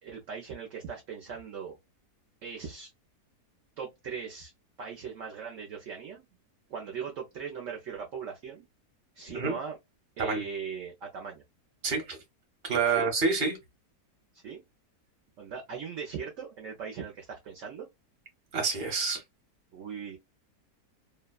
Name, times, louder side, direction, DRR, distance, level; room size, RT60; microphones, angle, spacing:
voice 1, 0.0-1.8 2.4-2.9 3.8-4.5 4.8-6.2 6.7-8.6 9.2-9.7 10.2-11.4 12.9-13.1 14.4-14.6 15.4-17.9 19.7-20.2, right 6 dB, 60° right, 0.9 m, -39 dB
voice 2, 11.8-12.2 12.6-13.6 18.5-19.2, right 4 dB, 35° right, 1.0 m, -28 dB
2.8 x 2.2 x 2.2 m
omnidirectional pair, 1.7 m